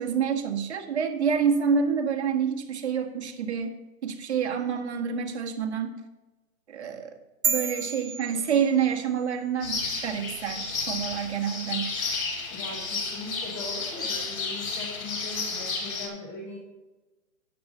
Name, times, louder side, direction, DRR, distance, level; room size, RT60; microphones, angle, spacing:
voice 1, 0.0-3.7 4.0-6.0 6.7-7.1 7.5-11.9, right 7 dB, 50° right, 2 dB, 1.9 m, -27 dB
sound 1, 7.4-9.2, right 6 dB, 85° right, 1.4 m, -31 dB
sound 2, 9.6-16.1, left 4 dB, 70° left, 4.0 m, -32 dB
voice 2, 12.5-16.6, left 2 dB, 10° left, -2 dB, 0.9 m, -39 dB
12.5 x 8.9 x 3.8 m, 1.1 s
hypercardioid pair, 165°, 42 cm